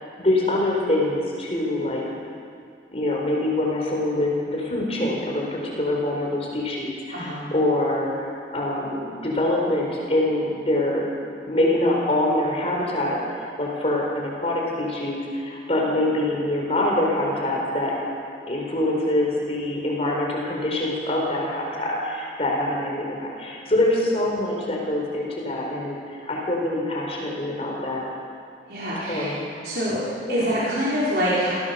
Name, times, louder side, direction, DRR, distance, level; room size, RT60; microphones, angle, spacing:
voice 1, 0.2-2.0 2.9-11.0 11.5-13.2 13.6-17.9 18.5-28.0 29.0-29.8 30.3-30.5, left 1 dB, 35° left, -2 dB, 4.2 m, -25 dB
voice 2, 7.1-7.5 28.7-29.3 29.6-30.0 30.3-31.5, equal, 60° right, -8 dB, 4.8 m, -25 dB
27.0 x 16.0 x 7.0 m, 2.3 s
head